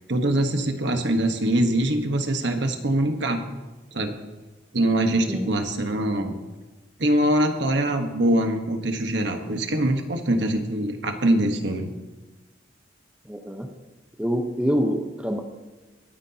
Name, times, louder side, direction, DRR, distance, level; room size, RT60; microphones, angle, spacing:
voice 1, 0.1-3.4 3.9-4.2 4.7-6.4 7.0-11.9, right 1 dB, 70° right, 5 dB, 1.3 m, -23 dB
voice 2, 13.2-13.7 14.2-15.4, equal, 5° right, 3 dB, 1.0 m, -25 dB
23.5 x 9.6 x 2.9 m, 1.2 s
head